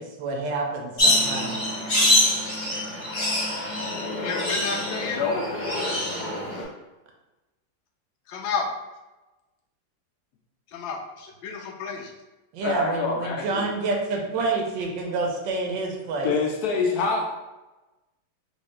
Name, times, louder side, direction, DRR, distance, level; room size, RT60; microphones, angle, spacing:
voice 1, 0.0-1.8 12.5-16.3, right 3 dB, 80° right, 1 dB, 1.3 m, -28 dB
sound 1, 1.0-6.6, left 1 dB, 35° left, 0.9 m, -25 dB
voice 2, 4.1-5.2 6.4-6.7 8.3-8.7 10.7-12.1, left 5 dB, 85° left, 2 dB, 1.3 m, -31 dB
voice 3, 5.1-5.5 12.6-13.7 16.2-17.2, left 4 dB, 70° left, 1 dB, 0.9 m, -25 dB
3.6 x 2.6 x 3.2 m, 1.1 s
omnidirectional pair, 2.0 m